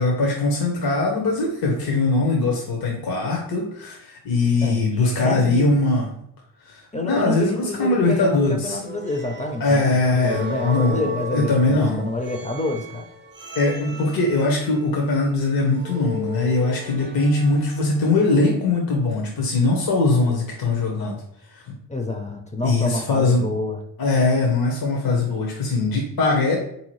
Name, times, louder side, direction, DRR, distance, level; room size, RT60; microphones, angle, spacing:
voice 1, 0.0-6.1 6.6-8.8 9.6-12.1 13.6-21.2 21.5-21.7 22.6-23.5 24.0-26.6, left 2 dB, 60° left, 0 dB, 0.9 m, -21 dB
voice 2, 4.6-5.9 6.9-13.1 21.9-23.8, left 2 dB, 20° left, 4 dB, 0.6 m, -28 dB
sound 1, 8.8-18.1, left 2 dB, 25° right, 0.6 m, -36 dB
3.7 x 2.8 x 3.1 m, 0.71 s
supercardioid pair, 50°, 41 cm